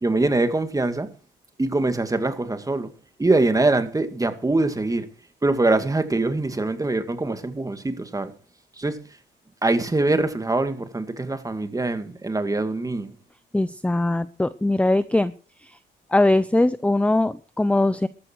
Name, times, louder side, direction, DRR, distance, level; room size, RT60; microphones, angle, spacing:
voice 1, 0.0-1.1 1.6-2.9 3.2-5.1 5.4-8.3 8.8-9.0 9.6-13.1, right 2 dB, 15° right, 2.2 m, -23 dB
voice 2, 13.5-15.3 15.6-15.8 16.1-18.1, left 2 dB, 5° left, 0.7 m, -21 dB
14.0 x 13.0 x 4.7 m
cardioid pair, 90°, 20 cm